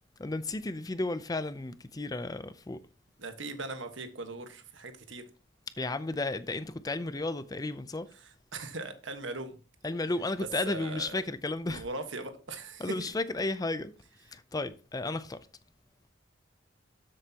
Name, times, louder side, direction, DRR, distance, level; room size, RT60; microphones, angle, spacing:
voice 1, 0.2-2.8 5.8-8.1 9.8-11.8 12.8-13.9 14.3-15.5, left 2 dB, 20° left, 0.5 m, -33 dB
voice 2, 3.2-5.2 8.5-9.6 10.6-11.3 11.6-13.1, right 2 dB, 85° right, 1.4 m, -39 dB
13.0 x 7.8 x 2.9 m
head